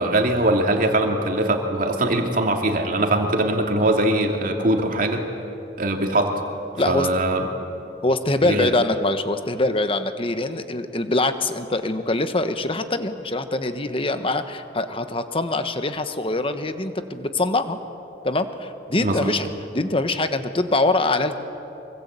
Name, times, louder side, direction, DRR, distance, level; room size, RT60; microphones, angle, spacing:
voice 1, 0.0-5.2 5.8-6.3 6.9-7.5 8.5-8.7 19.0-19.4, right 1 dB, 50° right, 3 dB, 2.7 m, -21 dB
voice 2, 6.8-7.1 8.0-17.8 18.2-19.5 19.7-21.4, left 2 dB, 30° left, 9 dB, 1.2 m, -23 dB
24.5 x 23.5 x 8.3 m, 2.9 s
head